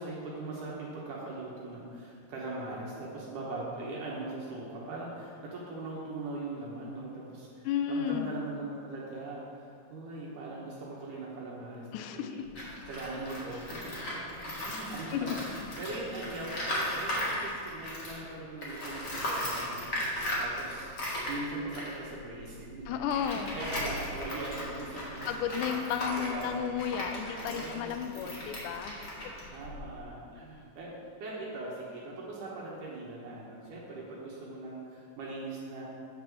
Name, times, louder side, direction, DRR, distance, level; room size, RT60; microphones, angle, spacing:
voice 1, 0.0-12.4 12.9-13.6 14.6-19.9 20.4-20.9 21.3-23.0 23.3-27.0 27.4-28.0 29.2-30.9 31.2-35.8, right 2 dB, 70° right, -4 dB, 2.5 m, -40 dB
voice 2, 7.6-8.3 11.9-12.5 14.7-14.8 15.1-15.3 22.9-23.6 25.3-29.3, left 9 dB, 85° left, 8 dB, 1.9 m, -33 dB
Tools, 12.4-18.3 18.6-30.0, left 1 dB, 45° left, 1.0 m, -37 dB
8.6 x 5.4 x 6.1 m, 2.3 s
omnidirectional pair, 4.1 m